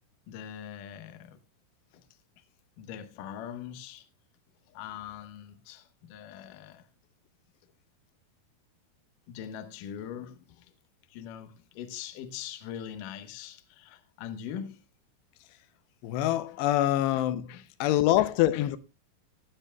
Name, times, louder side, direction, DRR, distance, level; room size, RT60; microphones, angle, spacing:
voice 1, 0.3-1.4 1.9-2.1 2.8-4.1 4.7-6.9 9.3-10.7 11.1-14.8 17.2-17.3 17.5-18.7, left 9 dB, 70° left, 2.2 m, -42 dB
voice 2, 16.0-17.5 17.8-18.8, left 13 dB, 85° left, 2.8 m, -25 dB
17.5 x 10.0 x 2.2 m
omnidirectional pair, 4.8 m